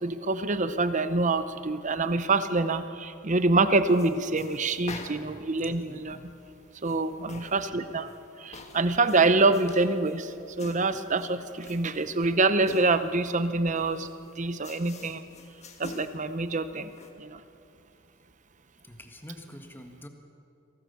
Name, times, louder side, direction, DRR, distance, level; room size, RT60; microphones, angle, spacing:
voice 1, 0.0-6.3 6.8-8.1 8.4-14.1 14.4-15.2 15.8-16.9 17.2-17.4, right 3 dB, 35° right, 11 dB, 0.8 m, -26 dB
sound 1, 3.9-17.1, left 2 dB, 30° left, 1.6 m, -48 dB
voice 2, 5.6-6.3 18.8-20.1, left 1 dB, 10° left, 4 dB, 1.6 m, -46 dB
24.0 x 17.5 x 6.9 m, 2.6 s
head